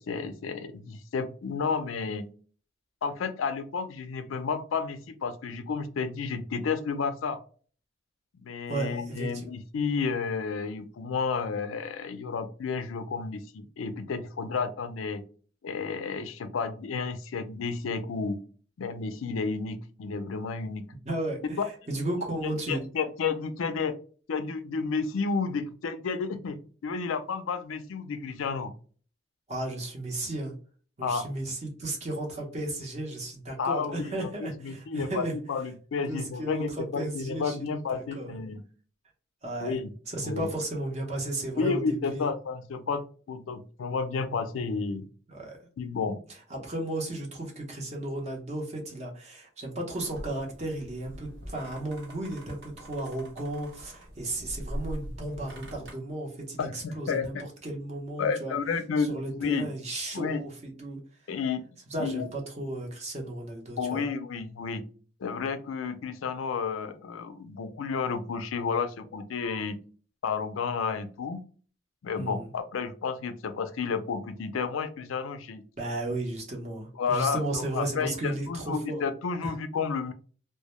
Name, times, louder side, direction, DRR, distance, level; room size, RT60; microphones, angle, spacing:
voice 1, 0.0-2.3 3.0-7.4 8.4-15.2 15.6-18.4 18.8-20.9 22.4-24.0 24.3-28.7 31.0-31.3 33.6-38.6 39.6-39.9 40.2-40.5 41.6-45.0 45.8-46.2 56.6-57.4 58.2-59.7 60.1-60.4 61.3-61.6 62.0-62.2 63.8-64.9 65.2-69.8 70.2-71.4 72.0-75.6 77.0-80.1, left 5 dB, 90° left, 9 dB, 0.4 m, -31 dB
voice 2, 8.7-9.4 21.0-22.9 29.5-30.5 31.0-35.3 36.1-37.6 37.9-38.4 39.4-39.7 40.1-42.3 45.3-45.6 46.5-57.3 57.6-58.6 59.0-61.0 61.9-64.0 72.2-72.5 75.8-79.1 79.4-79.5, right 1 dB, 35° right, 0 dB, 0.6 m, -34 dB
sound 1, 49.9-55.9, equal, 65° right, 0.8 m, -42 dB
2.1 x 2.0 x 2.9 m, 0.41 s
head